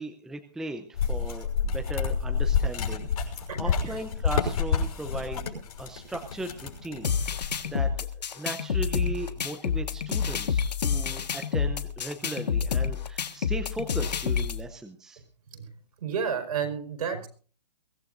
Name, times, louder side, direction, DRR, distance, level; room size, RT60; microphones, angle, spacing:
voice 1, 0.0-15.2, right 2 dB, ahead, 6 dB, 0.6 m, -38 dB
sound 1, 0.9-7.7, left 6 dB, 60° left, 5.8 m, -29 dB
sound 2, 7.0-14.6, left 7 dB, 80° left, 1.5 m, -28 dB
voice 2, 16.0-17.3, right 7 dB, 60° right, 5 dB, 4.7 m, -31 dB
23.0 x 15.5 x 2.6 m, 0.40 s
hypercardioid pair, 155°, 21 cm